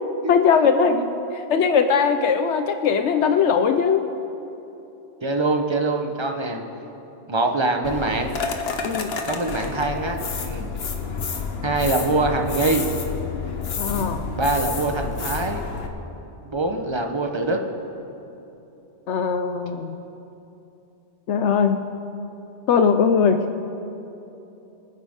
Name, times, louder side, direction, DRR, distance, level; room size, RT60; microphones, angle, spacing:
voice 1, 0.3-1.0 1.3-4.1 8.8-9.1 13.8-14.2 19.1-20.0 21.3-21.9 22.7-23.5, left 6 dB, 80° left, 7 dB, 1.0 m, -20 dB
voice 2, 5.2-6.6 7.3-8.3 9.2-10.7 11.6-12.9 14.3-15.6 16.4-17.6, right 2 dB, 25° right, 4 dB, 0.9 m, -24 dB
sound 1, 7.8-15.9, left 4 dB, 60° left, 1.2 m, -29 dB
24.5 x 9.2 x 3.7 m, 3.0 s
omnidirectional pair, 1.2 m